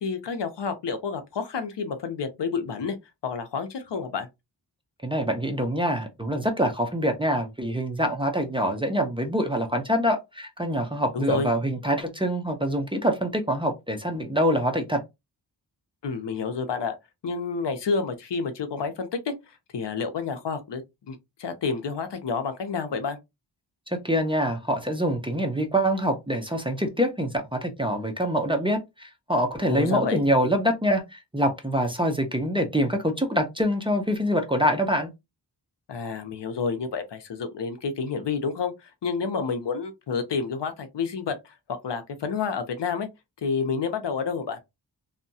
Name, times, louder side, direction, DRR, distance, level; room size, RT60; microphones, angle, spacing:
voice 1, 0.0-3.0 3.2-4.3 11.1-11.5 16.0-17.0 17.2-20.8 21.1-23.2 29.7-30.2 35.9-41.6 41.8-43.1 43.4-44.6, left 5 dB, 75° left, 0.7 m, -29 dB
voice 2, 5.0-15.0 24.0-35.1, equal, 15° right, 0.4 m, -25 dB
2.7 x 2.2 x 2.6 m
wide cardioid pair, 105°, 42 cm